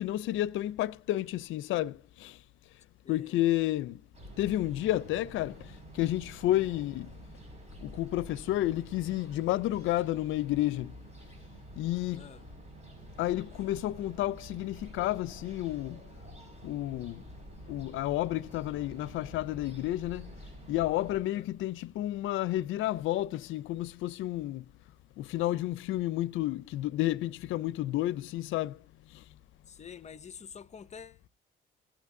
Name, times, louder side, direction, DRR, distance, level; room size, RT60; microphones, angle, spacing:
voice 1, 0.0-2.4 3.1-4.0 4.4-5.6 5.9-7.1 7.8-10.9 11.8-12.3 13.2-16.0 16.6-17.2 17.7-20.3 20.7-24.6 25.2-28.8, left 15 dB, 85° left, 0.5 m, -31 dB
voice 2, 3.0-3.4 6.5-6.7 12.1-12.4 21.3-21.5 29.7-31.3, left 6 dB, 35° left, 0.6 m, -48 dB
sound 1, 4.1-21.2, equal, 35° right, 5.3 m, -49 dB
17.5 x 8.7 x 2.6 m
cardioid pair, 90°, 20 cm